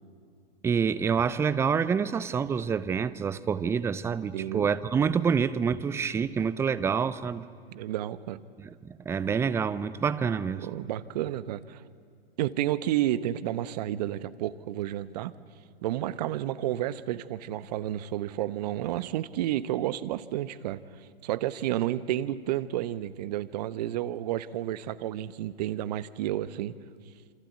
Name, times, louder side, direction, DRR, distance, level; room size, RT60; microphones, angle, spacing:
voice 1, 0.6-7.5 8.8-10.7, right 6 dB, 10° right, 0.6 m, -27 dB
voice 2, 4.3-4.7 7.7-8.4 10.6-11.8 12.4-15.3 15.8-26.7, right 13 dB, 40° right, 1.1 m, -31 dB
28.0 x 26.0 x 8.2 m
figure-of-eight pair, 115°, 31 cm